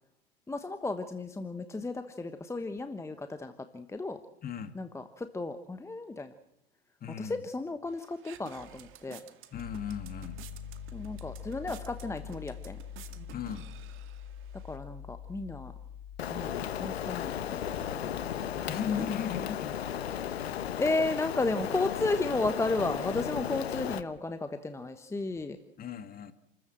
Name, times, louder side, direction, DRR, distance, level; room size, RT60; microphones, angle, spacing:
voice 1, 0.5-4.2 4.7-6.3 7.2-9.2 10.9-12.8 14.6-15.7 16.3-18.7 20.0-25.6, left 2 dB, 10° left, 9 dB, 1.2 m, -34 dB
voice 2, 4.4-4.8 7.0-7.4 9.5-10.4 13.3-13.7 18.7-19.8 25.8-26.3, left 7 dB, 30° left, 10 dB, 2.2 m, -36 dB
sound 1, 7.9-14.8, right 11 dB, 40° right, 2.0 m, -53 dB
Piano, 9.5-20.8, left 8 dB, 55° left, 3.5 m, -45 dB
Rain, 16.2-24.0, left 10 dB, 75° left, 1.3 m, -35 dB
29.5 x 14.0 x 7.8 m, 0.80 s
hypercardioid pair, 95°, 31 cm